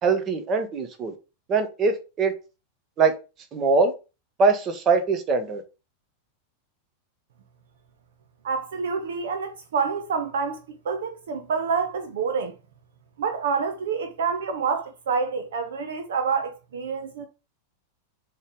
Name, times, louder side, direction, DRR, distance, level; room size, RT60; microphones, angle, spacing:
voice 1, 0.0-1.1 1.5-2.3 3.0-3.1 3.5-3.9 4.4-5.6, right 4 dB, 30° right, 1.3 m, -22 dB
voice 2, 8.4-12.5 13.2-17.3, right 5 dB, 60° right, 0.8 m, -27 dB
7.1 x 3.3 x 5.1 m
figure-of-eight pair, 90°, 0 cm